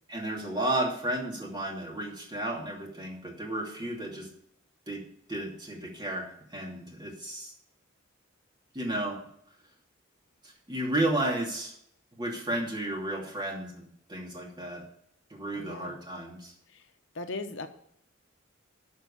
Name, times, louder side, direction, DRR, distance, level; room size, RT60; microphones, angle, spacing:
voice 1, 0.1-4.3 4.9-5.0 5.3-7.5 8.7-9.2 10.4-11.7 12.2-14.8 15.3-16.5, right 1 dB, 20° right, -1 dB, 2.7 m, -33 dB
voice 2, 15.5-16.0 16.7-16.8 17.1-17.7, left 3 dB, 65° left, 7 dB, 0.9 m, -38 dB
12.5 x 4.6 x 8.5 m, 0.69 s
head